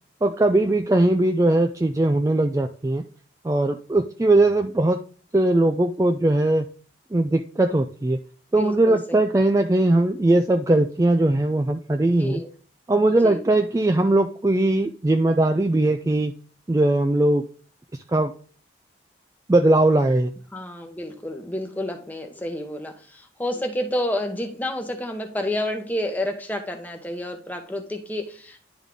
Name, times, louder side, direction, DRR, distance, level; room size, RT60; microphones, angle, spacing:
voice 1, 0.2-3.0 3.4-5.0 5.3-6.7 7.1-8.2 8.5-12.4 12.9-16.3 16.7-17.4 18.1-18.3 19.5-20.3, right 2 dB, 15° right, 5 dB, 0.3 m, -20 dB
voice 2, 8.5-9.2 12.2-12.5 13.2-13.4 20.5-28.7, left 1 dB, 10° left, 3 dB, 1.0 m, -30 dB
10.5 x 3.6 x 3.7 m, 0.41 s
head